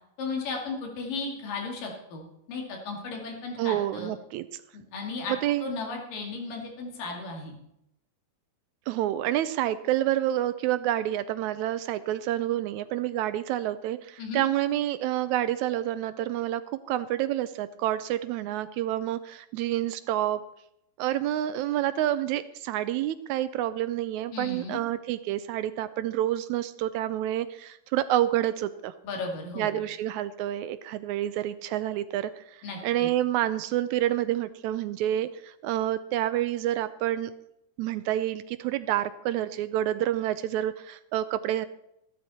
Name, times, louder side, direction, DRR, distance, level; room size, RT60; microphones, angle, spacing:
voice 1, 0.2-4.1 4.7-5.4 5.6-7.6 14.2-14.4 24.3-24.8 29.0-29.8 32.6-33.1, left 3 dB, 85° left, 1 dB, 4.0 m, -35 dB
voice 2, 3.6-4.4 5.4-5.6 8.9-16.6 16.9-20.4 21.0-28.9 29.6-37.3 37.8-41.7, right 13 dB, 80° right, 13 dB, 1.7 m, -28 dB
15.0 x 12.5 x 4.2 m, 0.81 s
omnidirectional pair, 3.8 m